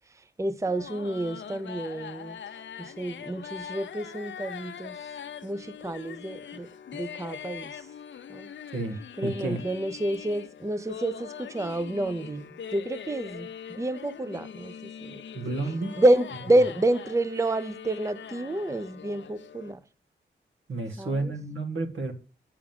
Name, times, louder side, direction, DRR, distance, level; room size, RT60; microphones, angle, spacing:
voice 1, 0.1-2.4 2.8-5.0 5.4-7.9 8.3-8.5 9.2-15.2 16.0-19.8 21.0-21.3, right 1 dB, 15° right, 0.6 m, -29 dB
sound 1, 0.6-19.7, left 8 dB, 70° left, 0.6 m, -42 dB
voice 2, 9.2-9.6 15.3-15.9 20.7-22.1, right 2 dB, 75° right, 1.8 m, -31 dB
7.3 x 5.0 x 7.2 m
cardioid pair, 60°, 20 cm